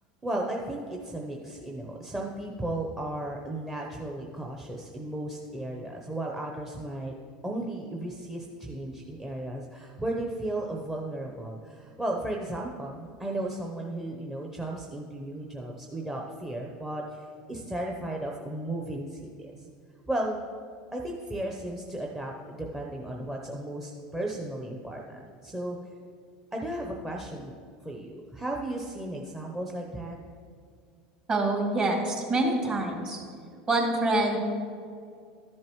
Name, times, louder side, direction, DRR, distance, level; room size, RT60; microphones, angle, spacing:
voice 1, 0.2-7.1 7.4-19.5 20.1-20.4 20.9-25.8 26.5-27.5 27.8-30.2, right 1 dB, 10° right, -1 dB, 0.8 m, -35 dB
voice 2, 31.3-33.2 33.7-34.4, right 2 dB, 35° right, -1 dB, 2.4 m, -26 dB
13.5 x 7.4 x 3.1 m, 2.3 s
supercardioid pair, 105°, 4 cm